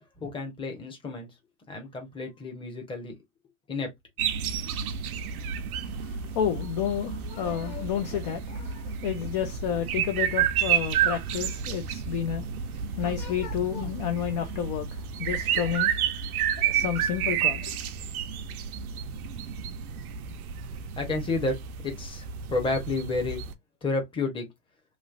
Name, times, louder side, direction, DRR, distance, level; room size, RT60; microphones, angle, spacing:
voice 1, 0.2-1.3 1.7-3.1 3.7-3.9 16.7-16.8 21.0-23.4 23.8-24.5, left 3 dB, 10° left, 0.9 m, -31 dB
sound 1, 4.2-23.5, right 8 dB, 75° right, 0.7 m, -31 dB
voice 2, 5.9-15.9 16.6-17.8, left 9 dB, 30° left, 0.4 m, -31 dB
3.1 x 2.8 x 2.5 m
hypercardioid pair, 135°, 44 cm